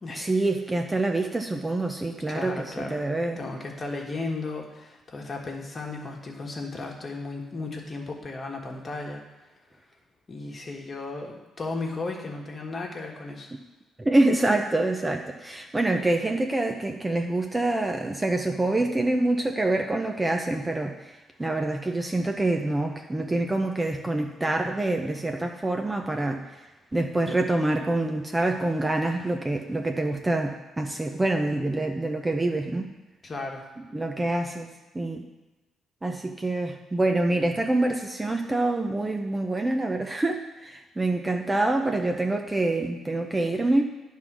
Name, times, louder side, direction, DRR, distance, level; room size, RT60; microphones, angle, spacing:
voice 1, 0.1-3.4 14.0-26.4 26.9-32.9 33.9-34.7 34.9-35.3 36.0-43.8, right 2 dB, 15° right, 3 dB, 0.7 m, -26 dB
voice 2, 2.3-3.0 3.4-9.2 10.3-13.5 33.2-33.6, left 3 dB, 35° left, 0 dB, 1.5 m, -35 dB
9.6 x 3.8 x 6.1 m, 1.1 s
cardioid pair, 90°, 0 cm